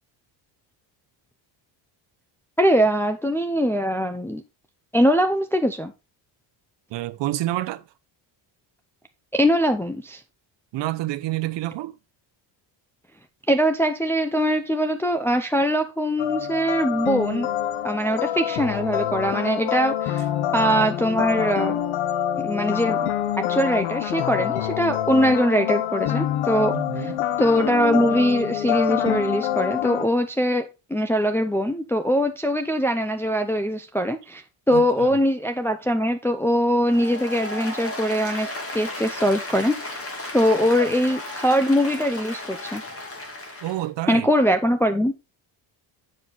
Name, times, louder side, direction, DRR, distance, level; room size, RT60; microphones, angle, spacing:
voice 1, 2.6-4.4 4.9-5.9 9.3-10.2 13.5-17.5 17.8-20.2 20.5-21.8 22.4-23.1 23.5-27.1 27.4-34.4 34.7-40.0 40.3-42.8 44.1-45.2, equal, 5° left, 0.5 m, -22 dB
voice 2, 6.9-7.8 10.7-12.0 26.7-27.2 34.7-35.1 43.6-44.3, right 15 dB, 65° right, 0.8 m, -28 dB
sound 1, 16.2-30.0, left 10 dB, 85° left, 1.0 m, -26 dB
Applause, 36.8-43.9, left 1 dB, 30° left, 2.6 m, -34 dB
7.8 x 6.4 x 3.9 m
cardioid pair, 135°, 47 cm